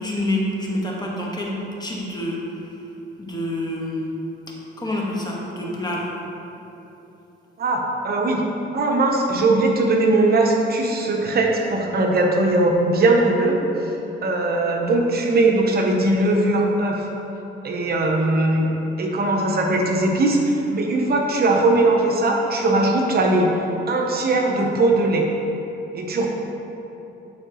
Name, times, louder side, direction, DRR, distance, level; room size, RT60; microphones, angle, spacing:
voice 1, 0.0-2.4 3.2-4.0 4.8-6.1, left 1 dB, 20° left, -3 dB, 1.3 m, -27 dB
voice 2, 7.6-8.5 8.7-13.6 14.2-17.1 17.6-18.7 19.0-23.5 23.9-25.3 25.9-26.3, right 2 dB, 50° right, 1 dB, 0.9 m, -20 dB
11.0 x 4.6 x 3.0 m, 3.0 s
cardioid pair, 90°, 20 cm